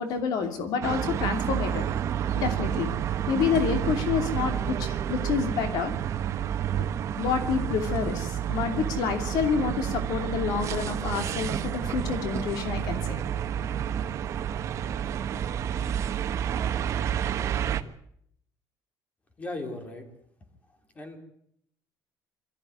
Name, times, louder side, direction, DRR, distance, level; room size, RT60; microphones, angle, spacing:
voice 1, 0.0-1.9 2.4-2.9 3.3-5.9 7.2-13.2, left 6 dB, 70° left, 7 dB, 2.8 m, -28 dB
sound 1, 0.8-17.8, right 9 dB, 45° right, 1.3 m, -29 dB
voice 2, 19.4-20.1 20.7-21.2, left 2 dB, 20° left, 6 dB, 3.5 m, -37 dB
23.0 x 14.5 x 9.4 m, 0.69 s
cardioid pair, 160°, 7 cm